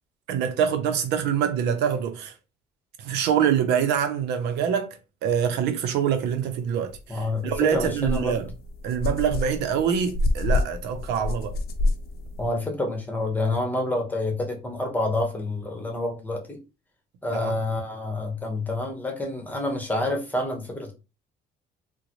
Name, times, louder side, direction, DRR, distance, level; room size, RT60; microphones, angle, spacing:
voice 1, 0.3-2.3 3.0-8.5 8.8-11.5 17.4-17.5, right 8 dB, 85° right, 0.6 m, -25 dB
sound 1, 6.9-7.0 7.5-12.5, left 2 dB, 65° left, 0.6 m, -28 dB
voice 2, 7.1-8.3 12.4-16.6 17.2-20.9, left 2 dB, 10° left, 1.0 m, -28 dB
3.7 x 2.1 x 3.0 m
cardioid pair, 110°, 17 cm